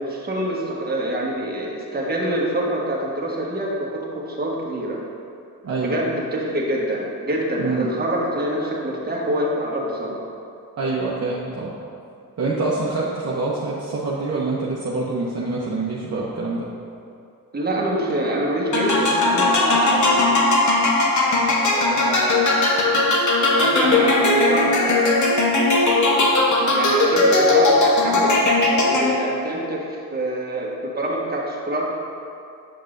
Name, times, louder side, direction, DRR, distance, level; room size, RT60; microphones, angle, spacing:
voice 1, 0.0-5.0 5.8-10.2 17.5-20.4 21.7-22.6 23.6-24.8 26.7-28.4 28.8-31.8, right 1 dB, 25° right, -3 dB, 1.3 m, -26 dB
voice 2, 5.6-6.1 7.6-7.9 10.8-11.8 12.4-16.7, right 3 dB, 45° right, -5 dB, 0.8 m, -25 dB
sound 1, 18.7-29.4, left 2 dB, 55° left, 1.1 m, -18 dB
7.8 x 5.3 x 2.6 m, 2.5 s
cardioid pair, 75°, 36 cm